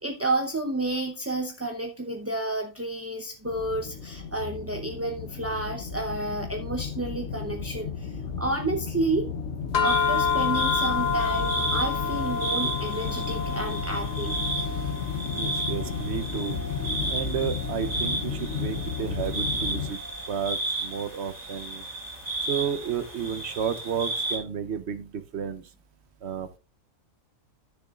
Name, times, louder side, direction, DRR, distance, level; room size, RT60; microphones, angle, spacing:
voice 1, 0.0-9.3 9.8-14.7, right 2 dB, 15° right, 2 dB, 0.5 m, -31 dB
sound 1, 3.4-19.9, left 6 dB, 60° left, 1.2 m, -33 dB
sound 2, 9.7-20.2, left 6 dB, 35° left, 0.9 m, -30 dB
sound 3, 9.8-24.4, right 2 dB, 40° right, 3.1 m, -33 dB
voice 2, 15.3-16.6 17.1-20.0 20.3-21.8 22.4-25.7 26.2-26.6, right 7 dB, 60° right, 11 dB, 1.0 m, -32 dB
14.0 x 6.8 x 2.4 m, 0.30 s
omnidirectional pair, 1.4 m